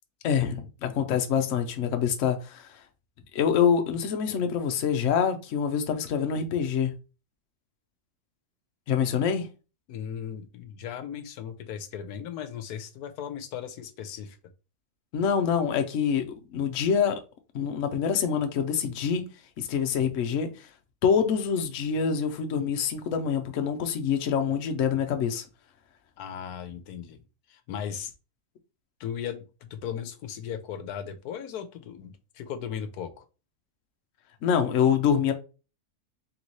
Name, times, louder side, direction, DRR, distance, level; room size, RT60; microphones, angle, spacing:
voice 1, 0.2-2.8 3.3-6.9 8.9-9.5 15.1-16.3 16.5-17.2 17.5-19.2 19.6-20.7 21.0-25.4 34.4-35.3, left 7 dB, 65° left, 0.9 m, -25 dB
voice 2, 9.9-14.4 26.2-27.2 27.5-28.1 29.0-33.2, left 8 dB, 85° left, 1.2 m, -37 dB
3.5 x 3.1 x 4.0 m
omnidirectional pair, 1.6 m